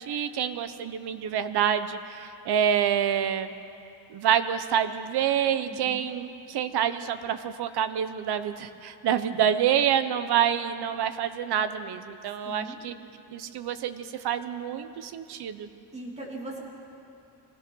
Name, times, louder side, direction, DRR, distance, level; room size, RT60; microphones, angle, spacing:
voice 1, 0.0-3.5 4.1-12.9 13.3-15.7, right 9 dB, 65° right, 10 dB, 1.1 m, -27 dB
voice 2, 5.6-6.0 9.3-9.4 12.4-12.8 15.9-16.6, right 1 dB, 15° right, -3 dB, 3.1 m, -39 dB
25.0 x 17.0 x 6.3 m, 2.7 s
cardioid pair, 165°, 42 cm